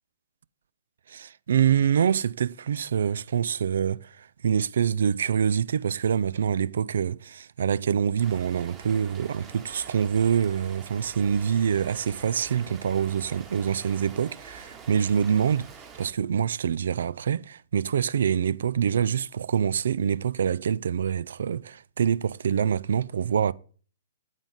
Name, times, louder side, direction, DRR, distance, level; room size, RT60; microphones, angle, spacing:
voice 1, 1.1-15.7 16.0-23.5, right 8 dB, 65° right, 0.4 m, -25 dB
Rain, 8.2-16.1, right 5 dB, 25° right, 2.0 m, -46 dB
9.0 x 8.3 x 3.7 m
figure-of-eight pair, 120°, 0 cm